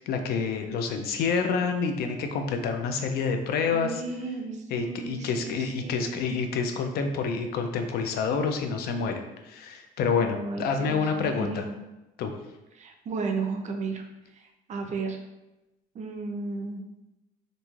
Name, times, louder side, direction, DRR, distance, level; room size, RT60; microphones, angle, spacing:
voice 1, 0.0-4.0 4.7-11.6 12.2-12.3, left 5 dB, 70° left, 6 dB, 0.4 m, -28 dB
voice 2, 3.7-6.1 10.2-11.7 12.8-14.0 14.7-15.2 15.9-16.8, right 4 dB, 45° right, 4 dB, 0.4 m, -34 dB
3.0 x 2.6 x 2.3 m, 0.98 s
cardioid pair, 110°, 17 cm